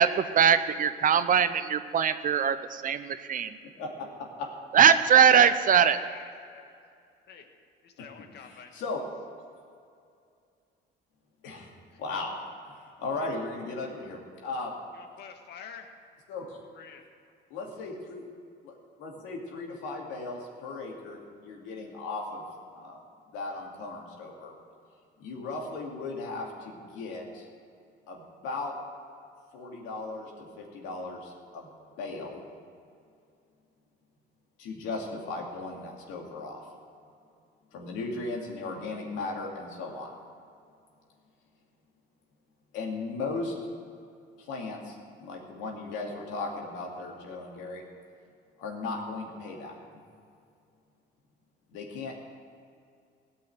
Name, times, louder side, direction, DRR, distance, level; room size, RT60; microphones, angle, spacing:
voice 1, 0.0-3.6 4.7-6.0, right 8 dB, 45° right, 12 dB, 0.7 m, -21 dB
voice 2, 5.3-6.7 7.3-7.5 7.8-8.7 11.9-12.0 14.9-15.9 16.7-17.0, left 7 dB, 60° left, 5 dB, 1.6 m, -47 dB
voice 3, 12.0-14.8 16.3-16.6 17.5-18.2 18.6-22.4 22.7-23.0 23.3-24.5 25.2-27.5 28.1-28.7 29.5-31.7 32.0-32.4 34.6-36.6 37.7-40.1 42.7-43.5 44.4-47.8 48.6-49.8 51.7-52.3, left 3 dB, 90° left, 0 dB, 2.4 m, -37 dB
16.5 x 5.7 x 9.4 m, 2.4 s
cardioid pair, 100°, 19 cm